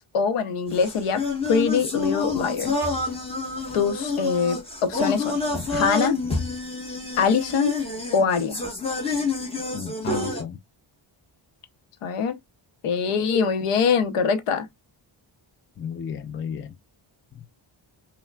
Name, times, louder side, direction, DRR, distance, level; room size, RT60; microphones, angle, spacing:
voice 1, 0.1-2.7 3.7-5.4 5.7-6.2 7.2-7.7 8.1-8.6 12.0-12.4 12.8-14.7, left 5 dB, 90° left, 0.8 m, -23 dB
sound 1, 0.7-10.4, left 3 dB, 10° left, 1.2 m, -28 dB
voice 2, 9.7-10.6 15.8-16.7 17.3-17.5, left 7 dB, 30° left, 0.4 m, -33 dB
5.4 x 2.2 x 2.2 m
wide cardioid pair, 155°, 50 cm